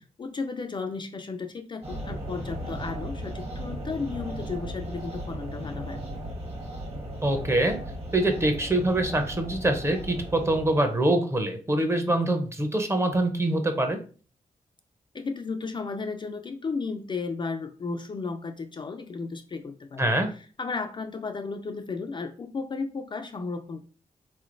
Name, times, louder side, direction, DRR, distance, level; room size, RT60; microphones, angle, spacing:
voice 1, 0.2-6.0 15.1-23.8, left 4 dB, 35° left, 6 dB, 0.3 m, -34 dB
sound 1, 1.8-11.0, equal, 45° right, 1.2 m, -36 dB
voice 2, 7.2-7.8 8.1-14.0 20.0-20.3, right 1 dB, 20° right, 6 dB, 0.6 m, -24 dB
3.6 x 3.1 x 2.5 m, 0.39 s
wide cardioid pair, 95°, 14 cm